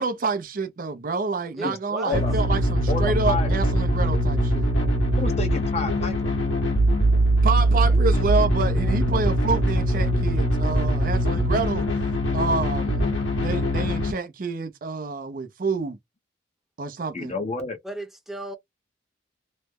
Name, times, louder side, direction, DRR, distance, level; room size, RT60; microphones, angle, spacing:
voice 1, 0.0-4.7 7.4-11.9 12.3-13.1 13.3-16.0 16.8-17.3, right 4 dB, 45° right, 0.5 m, -28 dB
voice 2, 1.6-2.3 7.9-8.4 8.7-9.0 17.8-18.6, right 1 dB, ahead, 0.8 m, -36 dB
sound 1, 2.1-14.1, right 1 dB, 75° left, 1.4 m, -22 dB
voice 3, 2.9-3.5 5.2-6.3 17.1-17.8, left 3 dB, 35° left, 0.7 m, -30 dB
3.1 x 2.0 x 3.5 m
head